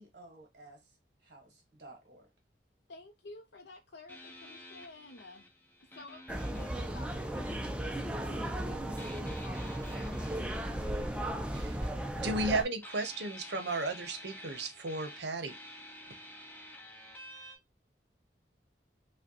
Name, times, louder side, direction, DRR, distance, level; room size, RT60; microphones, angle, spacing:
voice 1, 0.0-2.3, right 2 dB, 50° right, 1.0 m, -55 dB
voice 2, 2.9-5.5 5.8-10.3, left 2 dB, 75° left, 0.5 m, -52 dB
sound 1, 4.1-8.0 9.0-12.5 12.8-17.6, equal, 10° left, 0.8 m, -51 dB
sound 2, 6.3-12.6, right 1 dB, 5° right, 0.3 m, -36 dB
voice 3, 11.5-11.8 12.2-15.6, right 2 dB, 75° right, 0.7 m, -34 dB
4.9 x 2.1 x 2.7 m
head